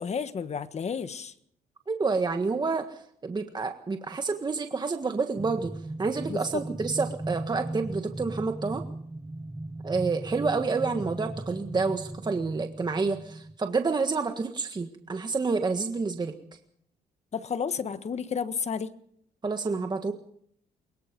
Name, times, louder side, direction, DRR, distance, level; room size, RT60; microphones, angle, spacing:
voice 1, 0.0-1.3 6.3-6.4 17.3-18.9, left 6 dB, 40° left, 11 dB, 1.4 m, -31 dB
voice 2, 1.9-5.7 6.0-8.8 9.8-16.3 19.4-20.1, right 4 dB, 25° right, 6 dB, 1.6 m, -29 dB
sound 1, 5.4-13.6, right 2 dB, 10° right, 0.8 m, -38 dB
23.0 x 21.5 x 5.3 m, 0.68 s
cardioid pair, 100°, 17 cm